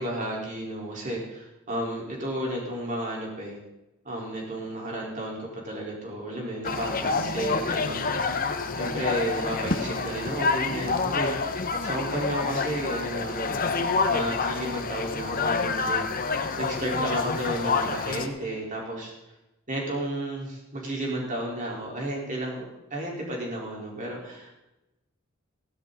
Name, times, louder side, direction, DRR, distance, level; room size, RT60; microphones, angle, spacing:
voice 1, 0.0-3.6 4.0-8.5 8.7-13.6 14.1-19.1 19.7-22.6 22.9-24.6, right 1 dB, 40° right, -2 dB, 4.3 m, -32 dB
sound 1, 6.6-18.3, left 4 dB, 45° left, 1.1 m, -28 dB
16.0 x 12.0 x 4.1 m, 0.96 s
head